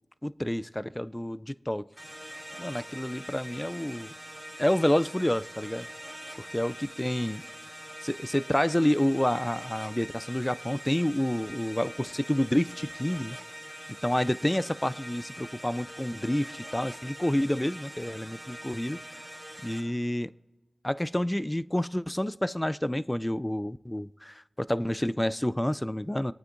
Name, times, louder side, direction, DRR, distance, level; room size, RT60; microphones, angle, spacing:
voice 1, 0.2-1.9 2.6-4.1 4.6-5.9 6.4-7.4 8.0-13.4 14.0-19.0 19.6-20.3 20.8-26.3, left 1 dB, 15° left, 0.3 m, -29 dB
sound 1, 2.0-19.8, equal, ahead, 3.4 m, -44 dB
24.5 x 9.2 x 2.6 m
wide cardioid pair, 55°, 0 cm